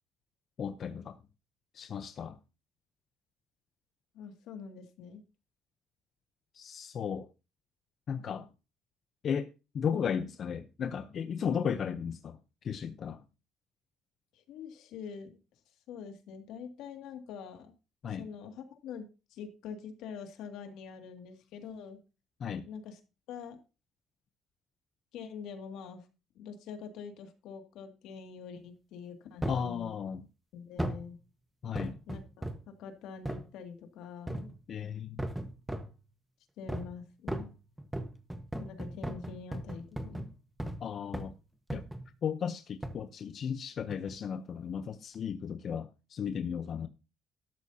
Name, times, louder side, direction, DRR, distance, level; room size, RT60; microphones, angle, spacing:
voice 1, 0.6-1.2 1.7-2.4 6.5-7.3 8.1-8.5 9.2-9.5 9.7-12.4 12.6-13.2 18.0-18.3 22.4-22.7 29.5-30.2 31.6-32.0 34.7-35.2 40.8-41.3 41.7-41.8 42.2-46.9, left 7 dB, 45° left, 0.7 m, -35 dB
voice 2, 4.1-5.2 14.3-15.4 15.9-17.7 18.1-22.0 22.7-23.0 23.3-23.6 25.1-26.1 26.4-30.1 30.5-31.2 32.1-34.5 36.6-37.5 38.6-40.3, left 6 dB, 80° left, 2.3 m, -45 dB
sound 1, 29.4-29.7 30.8-31.1 31.8-32.7 33.3-33.5 34.3-34.6 35.2-36.0 36.7-37.0 37.3-40.9 41.1-41.4 41.7-42.1 42.8-43.1 43.9-44.2 44.8-44.9, right 1 dB, 5° right, 1.4 m, -37 dB
13.0 x 12.0 x 2.8 m
cardioid pair, 140°, 0 cm